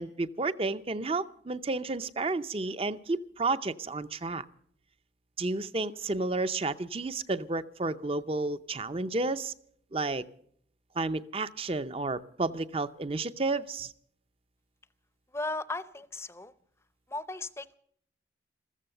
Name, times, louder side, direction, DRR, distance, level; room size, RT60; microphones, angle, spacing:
voice 1, 0.0-4.4 5.4-9.5 9.9-10.2 11.0-13.9, right 3 dB, 30° right, 14 dB, 0.6 m, -31 dB
voice 2, 15.3-16.5 17.1-17.7, left 2 dB, 15° left, 15 dB, 0.6 m, -36 dB
15.0 x 14.5 x 6.7 m, 0.62 s
head